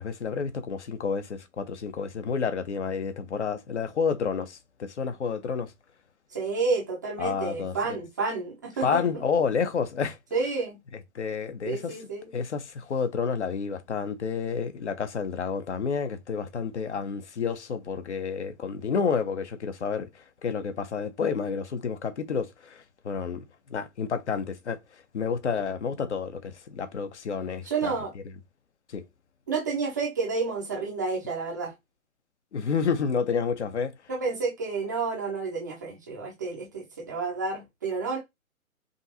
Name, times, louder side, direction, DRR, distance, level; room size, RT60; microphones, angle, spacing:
voice 1, 0.0-5.7 7.2-8.0 8.8-10.2 11.1-24.8 25.1-27.9 28.9-29.0 32.5-33.9, left 6 dB, 55° left, 0.8 m, -30 dB
voice 2, 6.3-9.0 10.3-10.8 11.6-12.3 27.6-28.1 29.5-31.7 34.1-38.2, right 4 dB, 15° right, 0.5 m, -30 dB
5.3 x 2.6 x 2.8 m
figure-of-eight pair, 130°, 42 cm